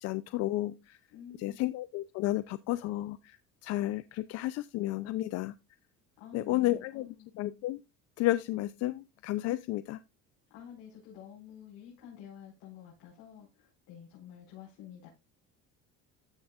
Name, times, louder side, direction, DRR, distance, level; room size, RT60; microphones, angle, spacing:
voice 1, 0.0-1.0 1.4-5.5 6.3-7.1 7.3-7.8 8.2-10.0, left 16 dB, 50° left, 0.5 m, -32 dB
voice 2, 1.1-1.6 6.2-7.3 10.5-15.1, left 9 dB, 85° left, 4.8 m, -50 dB
14.0 x 6.1 x 2.4 m
cardioid pair, 165°, 32 cm